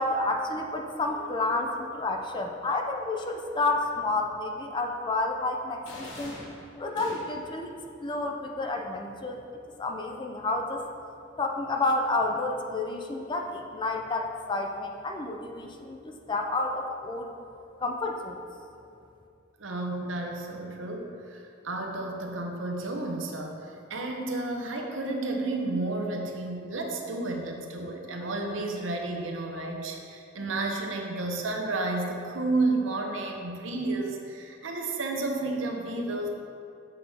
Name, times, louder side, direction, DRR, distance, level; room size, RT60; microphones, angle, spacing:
voice 1, 0.0-6.4 6.8-7.7 8.0-9.4 9.8-10.8 11.4-17.3 17.8-18.4, left 2 dB, 25° left, 3 dB, 0.4 m, -30 dB
sound 1, 5.9-7.6, left 1 dB, 75° left, 1.1 m, -43 dB
voice 2, 19.6-36.3, right 2 dB, 70° right, 2 dB, 0.8 m, -31 dB
7.0 x 6.1 x 3.5 m, 2.6 s
head